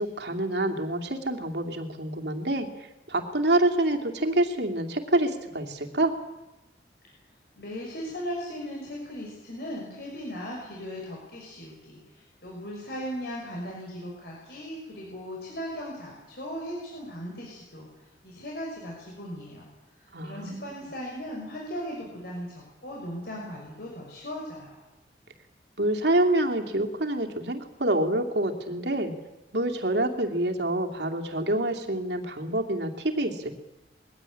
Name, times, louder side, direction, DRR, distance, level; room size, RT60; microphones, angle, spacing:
voice 1, 0.0-2.7 3.1-6.1 20.1-20.6 25.8-29.1 29.5-33.5, right 1 dB, 75° right, 4 dB, 2.7 m, -27 dB
voice 2, 7.6-17.9 18.2-19.7 20.0-24.8, equal, 60° left, -3 dB, 6.0 m, -38 dB
21.5 x 16.5 x 10.0 m, 0.98 s
head